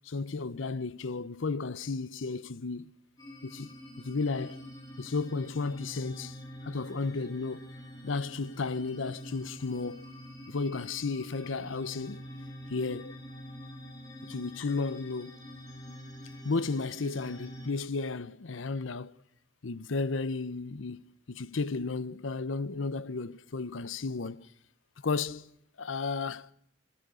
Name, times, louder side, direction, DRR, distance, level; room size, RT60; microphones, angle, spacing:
voice 1, 0.0-3.0 3.4-4.6 5.0-6.4 6.6-7.7 8.0-10.1 10.5-12.3 12.7-13.2 14.2-15.4 16.4-19.1 19.6-24.5 25.0-25.5 25.8-26.5, left 4 dB, 80° left, 0.7 m, -33 dB
sound 1, 3.2-17.7, equal, 20° left, 3.9 m, -46 dB
23.5 x 20.0 x 6.3 m
head